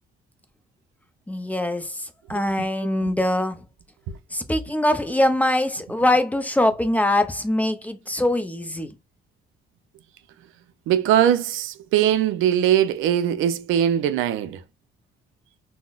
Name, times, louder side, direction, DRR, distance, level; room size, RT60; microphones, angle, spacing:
voice 1, 1.3-3.6 4.3-8.9, left 1 dB, 10° left, 0.5 m, -23 dB
voice 2, 10.9-14.6, right 10 dB, 85° right, 0.4 m, -21 dB
3.7 x 2.1 x 2.3 m
cardioid pair, 90°, 20 cm